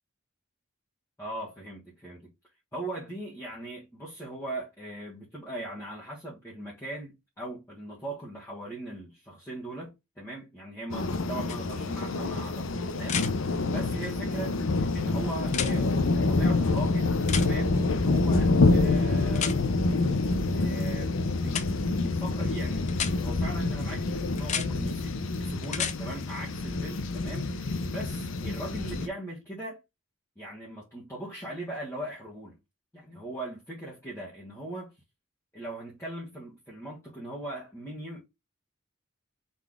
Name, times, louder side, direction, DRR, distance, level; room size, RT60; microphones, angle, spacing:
voice 1, 1.2-2.3 2.7-19.6 20.5-22.9 23.2-29.8 30.4-32.6 32.9-34.9 35.5-38.2, right 1 dB, 15° left, 1.4 m, -40 dB
sound 1, 10.9-29.1, left 3 dB, 75° left, 0.6 m, -27 dB
sound 2, 11.5-11.6 13.0-13.3 15.5-15.7 17.3-17.5 19.3-19.6 21.5-21.7 22.9-23.1 24.4-24.7 25.6-26.0 28.0-28.1, left 8 dB, 35° left, 0.5 m, -31 dB
4.1 x 3.4 x 3.5 m
head